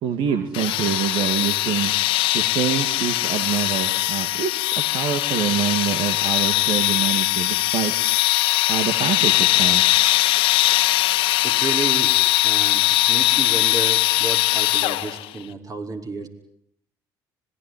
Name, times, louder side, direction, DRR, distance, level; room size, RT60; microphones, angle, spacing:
voice 1, 0.0-2.0 2.3-4.5 4.9-7.9 8.7-9.8, right 8 dB, 70° right, 7 dB, 2.2 m, -25 dB
sound 1, 0.5-15.3, left 17 dB, 80° left, 1.3 m, -20 dB
voice 2, 11.4-16.3, right 3 dB, 40° right, 4 dB, 5.5 m, -32 dB
26.0 x 21.0 x 9.9 m, 0.68 s
supercardioid pair, 70°, 9 cm